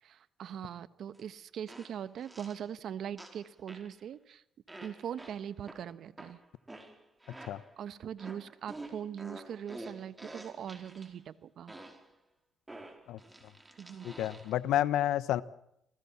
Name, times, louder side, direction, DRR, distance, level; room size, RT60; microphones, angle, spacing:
voice 1, 0.0-4.4 4.8-6.4 7.8-11.7 13.8-14.1, right 9 dB, 70° right, 15 dB, 1.2 m, -41 dB
sound 1, 1.1-1.2 1.7-2.7 3.2-4.0 4.7-7.8 8.2-11.1 11.7-12.1 12.7-14.6, right 2 dB, 15° right, 4.8 m, -49 dB
voice 2, 14.0-15.4, left 12 dB, 85° left, 16 dB, 1.1 m, -29 dB
28.0 x 19.5 x 7.3 m, 0.77 s
cardioid pair, 90°, 0 cm